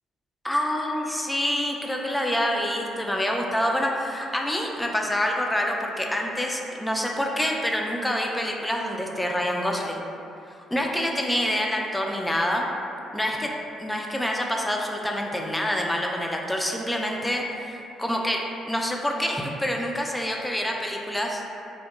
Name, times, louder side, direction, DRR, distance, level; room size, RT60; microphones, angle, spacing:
voice 1, 0.4-10.0 10.7-12.7 13.1-13.5 13.8-21.4, equal, 10° left, 0 dB, 0.3 m, -27 dB
2.2 x 2.0 x 2.9 m, 2.7 s
hypercardioid pair, 50°, 0 cm